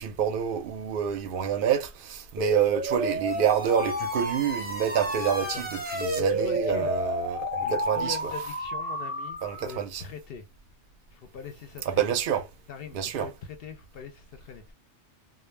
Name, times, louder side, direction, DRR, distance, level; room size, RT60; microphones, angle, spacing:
voice 1, 0.0-8.2 9.4-10.0 11.9-12.5 12.9-13.3, right 8 dB, 60° right, 0.6 m, -27 dB
sound 1, 2.4-9.8, right 1 dB, 10° right, 0.4 m, -31 dB
voice 2, 5.3-5.6 6.1-6.9 7.6-10.5 11.1-12.1 12.7-14.7, left 6 dB, 65° left, 0.7 m, -42 dB
2.2 x 2.0 x 3.1 m
omnidirectional pair, 1.2 m